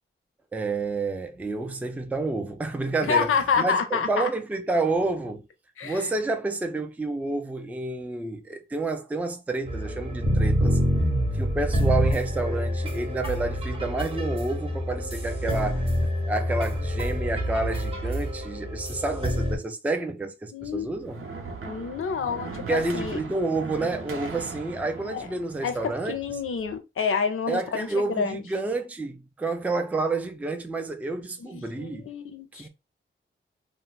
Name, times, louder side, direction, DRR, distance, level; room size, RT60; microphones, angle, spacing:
voice 1, 0.5-3.3 3.6-5.4 5.8-10.8 11.3-15.8 16.3-21.2 22.7-26.2 27.5-32.1 32.5-32.7, right 3 dB, 5° right, 0.3 m, -29 dB
voice 2, 3.0-4.3 5.8-6.0 20.5-20.9 21.6-23.2 25.1-25.3 25.6-28.4 31.4-32.7, left 6 dB, 85° left, 0.6 m, -28 dB
sound 1, 9.7-19.6, equal, 25° right, 0.7 m, -26 dB
sound 2, 20.6-26.8, right 4 dB, 90° right, 0.6 m, -39 dB
2.3 x 2.0 x 3.8 m
wide cardioid pair, 165°, 21 cm